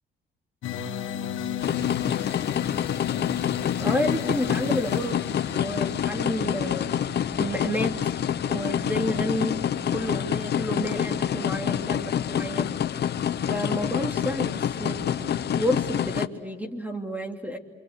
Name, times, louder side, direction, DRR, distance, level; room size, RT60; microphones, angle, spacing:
sound 1, 0.6-9.4, left 10 dB, 80° left, 1.6 m, -35 dB
sound 2, 1.6-16.3, left 9 dB, 55° left, 1.1 m, -27 dB
voice 1, 3.8-5.2 5.5-6.9 7.4-8.1 8.5-9.6 9.9-12.7 13.5-17.6, equal, 10° right, 4 dB, 2.8 m, -30 dB
28.0 x 26.0 x 8.1 m, 1.2 s
cardioid pair, 90°, 20 cm